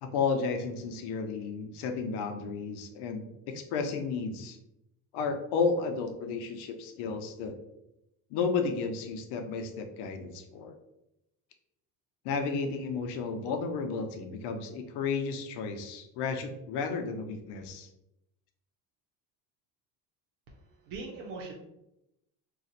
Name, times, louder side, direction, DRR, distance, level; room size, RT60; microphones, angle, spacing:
voice 1, 0.0-4.6 5.1-7.5 8.3-10.7 12.2-17.9, left 5 dB, 75° left, 5 dB, 0.7 m, -32 dB
voice 2, 20.5-21.5, right 3 dB, 75° right, -1 dB, 0.8 m, -41 dB
2.5 x 2.4 x 4.0 m, 0.86 s
cardioid pair, 105°, 41 cm